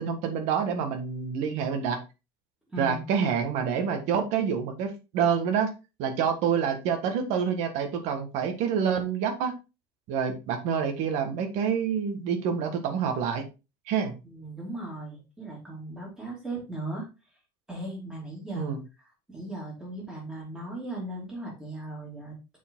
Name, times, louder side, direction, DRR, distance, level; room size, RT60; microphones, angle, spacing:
voice 1, 0.0-2.0 2.8-5.7 6.0-9.5 10.1-13.4 13.9-14.1 18.5-18.8, right 7 dB, 60° right, 7 dB, 1.5 m, -27 dB
voice 2, 2.7-3.0 14.2-17.1 17.7-18.7 19.3-22.4, right 1 dB, 5° right, -3 dB, 2.8 m, -37 dB
7.0 x 4.8 x 3.7 m, 0.29 s
cardioid pair, 160°, 13 cm